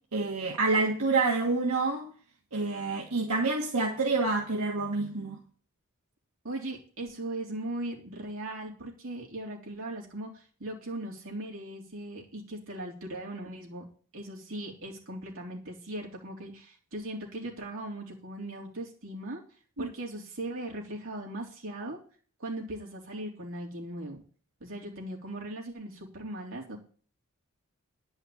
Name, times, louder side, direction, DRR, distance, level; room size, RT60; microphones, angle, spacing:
voice 1, 0.1-2.1 2.5-5.4 19.8-19.9, right 3 dB, 80° right, 1.6 m, -28 dB
voice 2, 6.4-13.8 14.1-19.4 19.8-22.0 22.4-24.2 24.6-26.8, right 1 dB, 65° right, 3.4 m, -39 dB
10.5 x 5.6 x 8.6 m
head